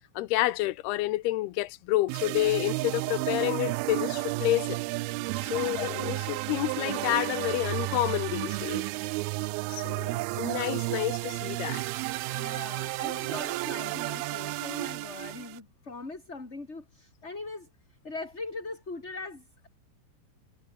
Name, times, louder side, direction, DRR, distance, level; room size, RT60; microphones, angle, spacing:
voice 1, 0.2-4.8 5.4-8.8 9.8-11.8, left 17 dB, 75° left, 2.7 m, -29 dB
sound 1, 2.1-15.6, right 22 dB, 80° right, 2.2 m, -32 dB
voice 2, 5.4-5.8 12.3-17.7 18.0-19.7, left 3 dB, 15° left, 3.6 m, -41 dB
omnidirectional pair, 4.8 m